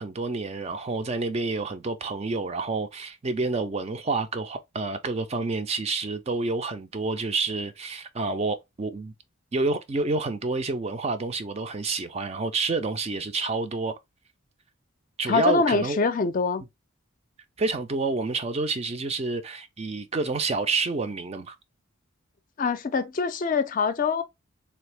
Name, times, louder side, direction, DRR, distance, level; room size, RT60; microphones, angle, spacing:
voice 1, 0.0-9.1 9.5-14.0 15.2-16.0 17.6-21.5, right 3 dB, 30° right, 0.4 m, -28 dB
voice 2, 15.3-16.6 22.6-24.2, left 4 dB, 40° left, 0.4 m, -24 dB
3.3 x 2.8 x 3.1 m
head